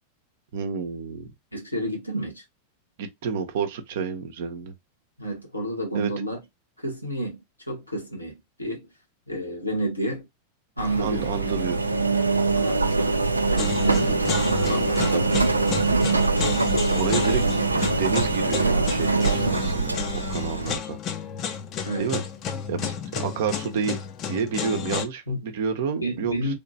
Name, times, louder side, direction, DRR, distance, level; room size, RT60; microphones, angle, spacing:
voice 1, 0.5-1.3 3.0-4.7 5.9-6.1 11.0-11.8 15.1-15.4 16.9-17.4 17.7-21.0 22.0-22.2 22.7-24.0 24.3-26.5, right 6 dB, 55° right, 0.8 m, -29 dB
voice 2, 1.5-2.4 5.2-6.4 6.8-7.4 7.7-8.9 9.3-10.2 10.8-11.3 12.5-14.2 14.5-15.3 21.8-22.1 25.3-25.4 26.0-26.5, right 1 dB, 90° left, 1.4 m, -31 dB
sound 1, 10.8-19.8, right 3 dB, 10° right, 0.7 m, -42 dB
Engine, 10.8-20.8, right 3 dB, 80° right, 0.4 m, -23 dB
sound 2, 13.6-25.1, left 7 dB, 35° left, 0.6 m, -32 dB
3.4 x 2.9 x 2.7 m
figure-of-eight pair, 90°, 0 cm